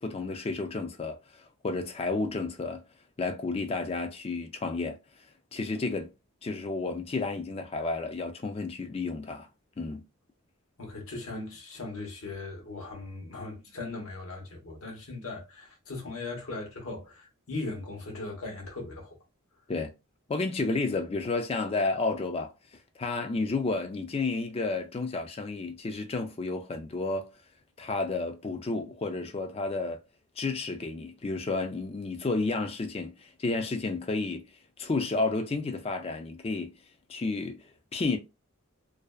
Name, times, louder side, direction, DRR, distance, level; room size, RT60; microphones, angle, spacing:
voice 1, 0.0-2.8 3.2-5.0 5.5-6.1 6.4-9.5 9.8-10.0 19.7-19.9 20.3-22.5 23.0-27.3 27.8-30.0 30.4-34.4 34.8-36.7 37.1-38.2, left 3 dB, 25° left, 0.3 m, -31 dB
voice 2, 10.8-19.2, left 3 dB, 70° left, 1.0 m, -39 dB
2.6 x 2.1 x 2.2 m
head